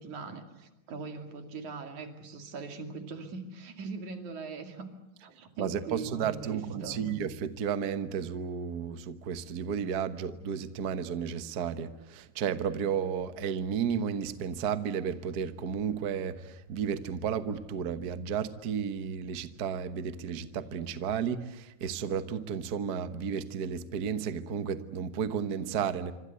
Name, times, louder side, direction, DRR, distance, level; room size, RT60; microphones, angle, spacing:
voice 1, 0.0-4.9 5.2-7.1, right 4 dB, 65° right, 3.8 m, -41 dB
voice 2, 5.6-26.1, right 7 dB, 85° right, 0.8 m, -33 dB
27.0 x 25.0 x 8.2 m
omnidirectional pair, 3.8 m